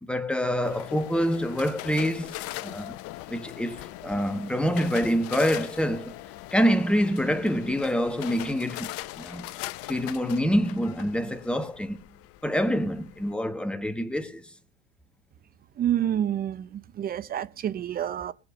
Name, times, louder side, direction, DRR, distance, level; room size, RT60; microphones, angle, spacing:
voice 1, 0.0-2.9 3.3-6.2 6.5-8.9 9.2-9.5 9.9-12.0 12.4-14.5, equal, 5° left, 1.3 m, -26 dB
sound 1, 0.6-13.3, left 17 dB, 45° left, 0.7 m, -40 dB
voice 2, 15.8-18.3, right 10 dB, 25° right, 0.7 m, -28 dB
20.5 x 7.1 x 5.0 m
hypercardioid pair, 90°, 34 cm